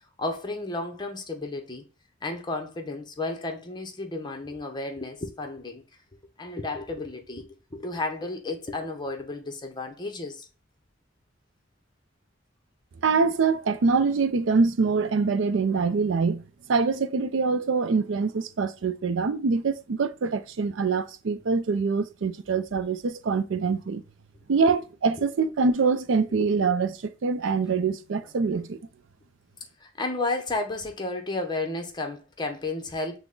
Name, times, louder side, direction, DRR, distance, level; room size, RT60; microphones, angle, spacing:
voice 1, 0.2-1.8 2.2-5.8 6.4-10.5 24.7-24.8 25.2-25.3 26.3-26.5 29.8-33.2, left 2 dB, 25° left, 0.8 m, -32 dB
voice 2, 13.0-16.4 16.7-24.0 24.5-26.9 27.2-28.8, right 4 dB, 70° right, 0.4 m, -24 dB
5.9 x 2.2 x 3.7 m
head